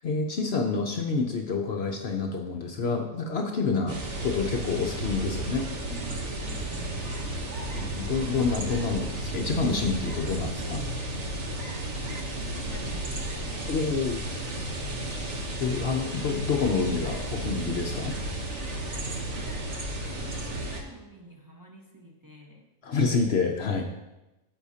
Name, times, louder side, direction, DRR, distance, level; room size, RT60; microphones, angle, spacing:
voice 1, 0.0-5.6 7.8-10.8 13.7-14.2 15.6-18.1 22.8-23.8, left 4 dB, 60° left, 3 dB, 0.8 m, -28 dB
sound 1, 3.9-20.8, right 1 dB, 60° right, 1.3 m, -33 dB
voice 2, 5.9-7.7 11.8-13.7 20.2-22.6, right 1 dB, 15° right, -2 dB, 0.9 m, -48 dB
13.0 x 5.6 x 2.8 m, 1.0 s
omnidirectional pair, 1.4 m